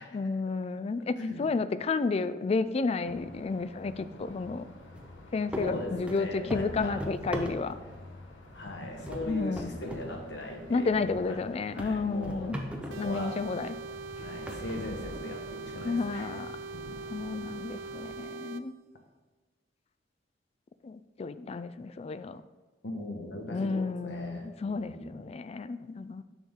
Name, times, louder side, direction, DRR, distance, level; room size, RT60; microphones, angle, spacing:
voice 1, 0.1-4.6 5.3-7.8 9.3-9.7 10.7-12.6 13.0-13.8 15.8-16.5 17.1-18.7 20.8-22.4 23.5-26.2, left 4 dB, 35° left, 13 dB, 0.3 m, -31 dB
sound 1, 3.0-18.2, left 1 dB, 90° left, 1.1 m, -48 dB
sound 2, 4.9-5.2 5.5-8.0 8.4-8.8 9.1-10.1 10.4-10.5 11.1-11.2 11.8-13.1 13.8-13.9 14.5-15.5, equal, 5° right, 0.7 m, -39 dB
voice 2, 5.6-7.1 8.5-11.5 11.7-12.5 12.9-13.4 14.2-16.3 22.8-25.2, left 1 dB, 65° left, 3 dB, 1.2 m, -39 dB
sound 3, 12.9-18.6, right 4 dB, 85° right, 0.3 m, -41 dB
7.0 x 6.4 x 3.6 m, 1.3 s
head